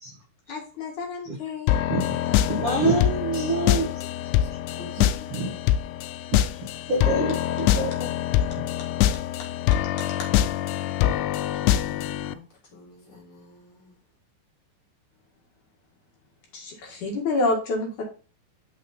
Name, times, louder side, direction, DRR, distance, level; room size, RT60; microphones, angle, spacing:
voice 1, 0.5-1.7 2.3-2.4 2.7-2.8 16.5-18.0, left 3 dB, 55° left, 2.6 m, -28 dB
sound 1, 1.7-12.3, left 12 dB, 85° left, 2.3 m, -24 dB
voice 2, 2.5-3.9 5.0-5.5 6.3-6.4 6.9-8.1 8.5-8.7, right 2 dB, 65° right, 1.3 m, -26 dB
voice 3, 4.4-5.6 10.7-11.0 11.3-12.4 12.7-13.9, left 3 dB, 30° left, 3.5 m, -49 dB
6.3 x 6.0 x 4.2 m
omnidirectional pair, 5.2 m